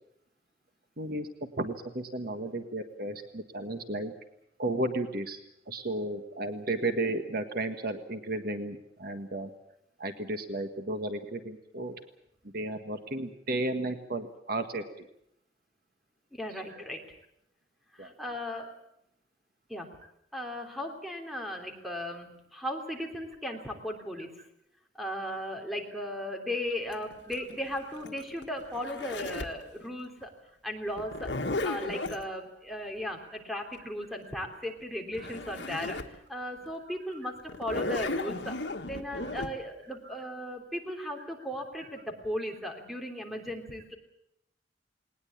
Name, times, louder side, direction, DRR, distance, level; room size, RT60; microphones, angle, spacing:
voice 1, 1.0-1.3 1.6-4.1 4.6-5.4 5.7-9.5 10.0-11.9 12.4-15.1 16.6-16.8 18.0-18.1 18.6-18.7 35.2-35.3 37.1-37.4 37.6-37.8 39.2-39.3 40.0-40.2, right 2 dB, 55° right, 7 dB, 1.6 m, -34 dB
voice 2, 16.3-17.0 18.0-18.7 19.7-19.9 20.3-24.4 25.0-30.3 30.6-31.3 31.6-36.0 36.3-38.6 38.9-44.0, left 1 dB, ahead, 3 dB, 3.3 m, -36 dB
Zipper (clothing), 26.9-29.6 31.0-32.2 34.8-34.9 35.1-36.2 36.6-36.7 37.5-39.5, left 2 dB, 80° left, 1.7 m, -35 dB
20.0 x 20.0 x 8.6 m, 0.78 s
head